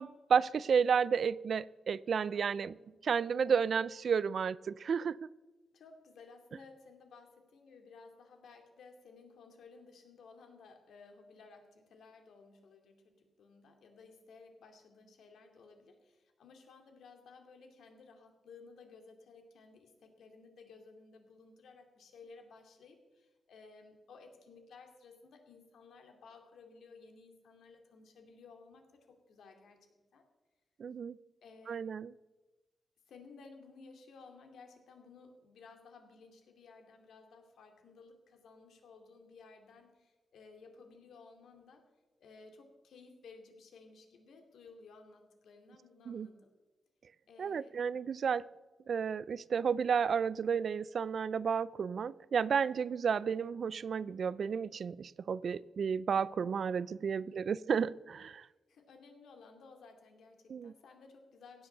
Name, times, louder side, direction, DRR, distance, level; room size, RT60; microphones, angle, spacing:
voice 1, 0.0-2.7 3.0-5.3 30.8-31.2 31.7-32.1 46.1-46.3 47.4-48.5 48.9-58.4 60.5-60.7, right 6 dB, 55° right, 20 dB, 0.3 m, -32 dB
voice 2, 2.3-3.0 5.7-30.2 31.4-31.9 33.1-41.9 42.2-46.5 47.3-47.8 57.2-57.6 58.7-61.7, left 4 dB, 85° left, 4 dB, 2.4 m, -57 dB
16.5 x 7.9 x 6.6 m, 1.2 s
wide cardioid pair, 135°, 0 cm